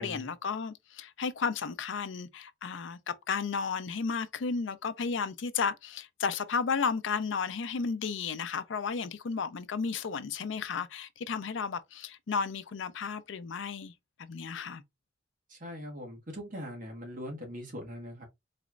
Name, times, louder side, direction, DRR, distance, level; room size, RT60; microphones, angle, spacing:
voice 1, 0.0-13.9 14.2-14.8, left 5 dB, 75° left, 0.5 m, -33 dB
voice 2, 15.5-18.3, equal, 45° right, 1.3 m, -41 dB
4.1 x 3.0 x 2.4 m
head